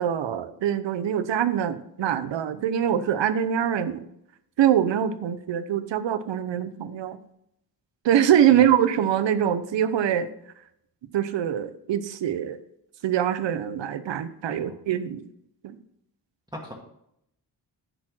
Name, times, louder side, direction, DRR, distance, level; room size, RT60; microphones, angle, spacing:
voice 1, 0.0-4.1 4.6-7.2 8.0-10.3 11.1-12.6 13.0-15.2 15.6-15.8, right 10 dB, 90° right, 13 dB, 0.8 m, -24 dB
voice 2, 8.5-8.6 14.6-14.8 16.5-16.7, equal, 10° right, -1 dB, 1.5 m, -39 dB
10.0 x 4.5 x 6.0 m, 0.76 s
wide cardioid pair, 115°, 43 cm